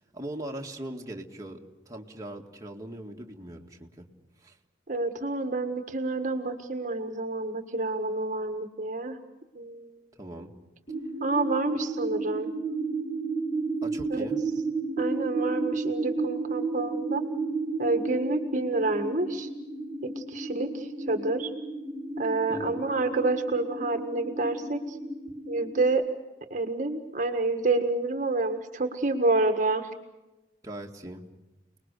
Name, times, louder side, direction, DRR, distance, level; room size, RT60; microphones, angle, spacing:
voice 1, 0.1-1.6 1.9-4.1 4.4-4.6 10.2-10.5 13.8-14.4 22.5-22.8 30.6-31.2, right 1 dB, 20° right, 0 dB, 2.1 m, -40 dB
voice 2, 4.9-9.2 9.5-9.9 11.2-12.5 14.1-14.3 15.0-17.2 17.8-19.5 20.0-21.5 22.2-25.0 25.5-26.1 26.5-29.9, right 2 dB, 45° right, 7 dB, 1.6 m, -28 dB
sound 1, 10.9-25.9, right 3 dB, 40° left, 4.7 m, -33 dB
29.5 x 20.5 x 6.7 m, 1.0 s
head